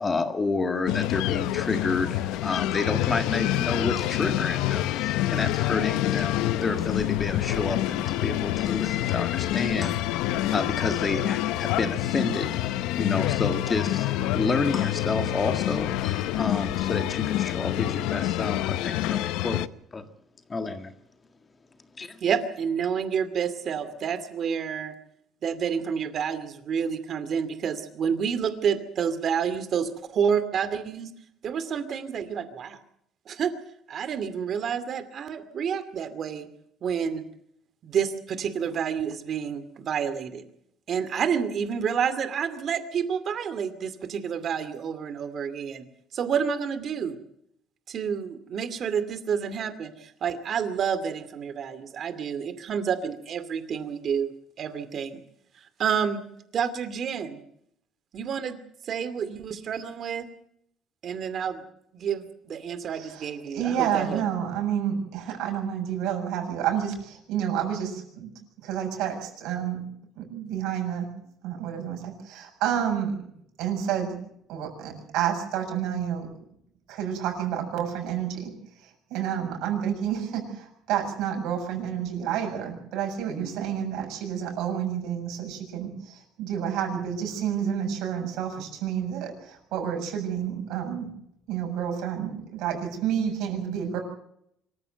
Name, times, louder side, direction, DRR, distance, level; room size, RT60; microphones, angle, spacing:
voice 1, 0.0-20.1 20.5-20.9 22.0-22.2, left 3 dB, 20° left, 8 dB, 1.8 m, -30 dB
sound 1, 0.9-19.7, left 14 dB, 90° left, 0.7 m, -27 dB
voice 2, 22.2-24.9 25.4-31.1 31.4-32.8 33.3-33.5 33.9-36.5 36.8-37.2 37.8-40.4 40.9-45.8 46.1-47.2 47.9-54.3 54.6-55.2 55.8-56.2 56.5-57.4 58.1-60.3 61.0-61.6 61.9-64.2 71.9-72.0 74.9-75.0 83.4-83.5, right 7 dB, 40° right, 12 dB, 2.4 m, -29 dB
voice 3, 62.9-68.3 68.6-69.8 70.2-71.1 71.4-73.2 73.6-74.2 74.5-76.3 76.9-78.5 78.8-91.1 91.5-94.0, right 9 dB, 80° right, 3 dB, 6.9 m, -29 dB
25.0 x 14.5 x 7.9 m, 0.72 s
cardioid pair, 155°, 0 cm